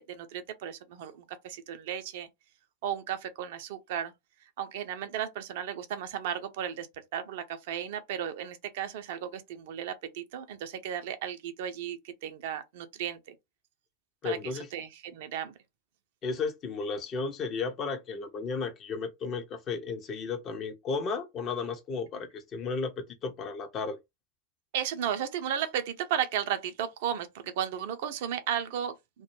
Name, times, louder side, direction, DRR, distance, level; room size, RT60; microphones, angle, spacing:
voice 1, 0.0-2.3 2.8-4.1 4.6-6.9 7.1-13.2 14.2-14.4 14.7-15.5 24.7-29.2, right 9 dB, 50° right, 0.4 m, -34 dB
voice 2, 14.2-14.7 16.2-24.0, left 4 dB, 30° left, 0.5 m, -34 dB
2.2 x 2.1 x 3.0 m
figure-of-eight pair, 90°, 0 cm